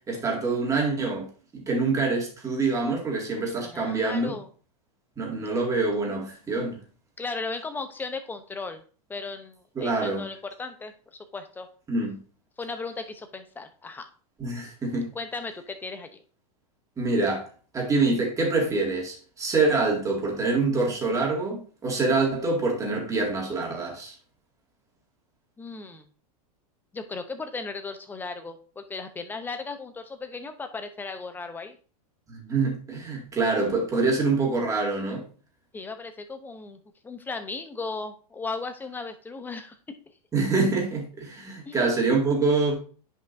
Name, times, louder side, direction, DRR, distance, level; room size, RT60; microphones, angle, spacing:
voice 1, 0.1-1.3 1.5-4.3 5.2-6.8 9.8-10.3 11.9-12.2 14.4-15.1 17.0-17.5 17.7-24.1 32.3-35.2 40.3-42.8, right 3 dB, 15° right, 2.1 m, -25 dB
voice 2, 3.5-4.5 7.2-8.8 9.1-10.9 11.3-11.7 12.6-14.1 15.1-16.2 25.6-26.1 26.9-31.8 35.7-36.8 37.0-39.8 41.7-41.9, left 4 dB, 10° left, 0.7 m, -36 dB
9.6 x 5.3 x 2.6 m
supercardioid pair, 135°, 20 cm